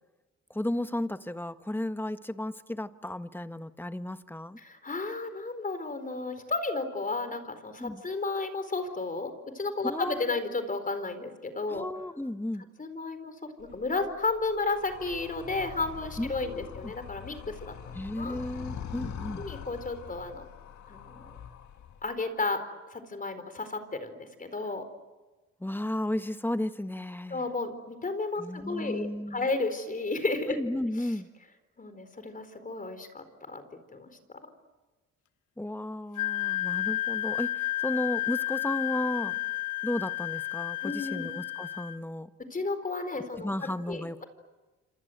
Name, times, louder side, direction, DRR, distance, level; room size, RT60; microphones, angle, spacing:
voice 1, 0.5-4.6 7.8-8.0 9.8-10.4 11.7-12.6 16.2-16.9 17.9-19.5 25.6-27.5 28.4-29.5 30.5-31.3 35.6-39.4 39.8-42.3 43.4-44.2, left 1 dB, 5° left, 10 dB, 1.3 m, -34 dB
voice 2, 4.6-11.9 12.8-18.4 19.4-20.5 20.9-21.4 22.0-22.6 22.9-24.8 27.3-30.6 31.0-31.1 31.8-33.6 33.9-34.1 39.3-39.4 40.8-41.3 42.5-44.2, left 3 dB, 25° left, 9 dB, 4.4 m, -33 dB
Animal, 13.6-22.2, left 8 dB, 70° left, 2.1 m, -43 dB
Wind instrument woodwind instrument, 36.2-42.0, left 15 dB, 85° left, 1.3 m, -32 dB
27.5 x 27.0 x 8.0 m, 1.2 s
cardioid pair, 90°, 30 cm